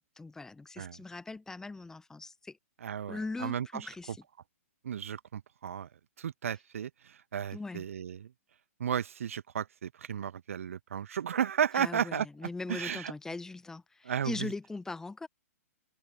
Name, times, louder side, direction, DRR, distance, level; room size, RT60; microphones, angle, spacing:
voice 1, 0.0-2.6 3.1-4.2 7.5-7.8 11.7-15.3, left 3 dB, 5° left, 1.1 m, -40 dB
voice 2, 2.8-3.9 4.8-5.9 6.2-8.3 8.8-12.3 12.7-13.1 14.0-14.5, right 8 dB, 65° right, 0.5 m, -34 dB
open air
figure-of-eight pair, 115°, 8 cm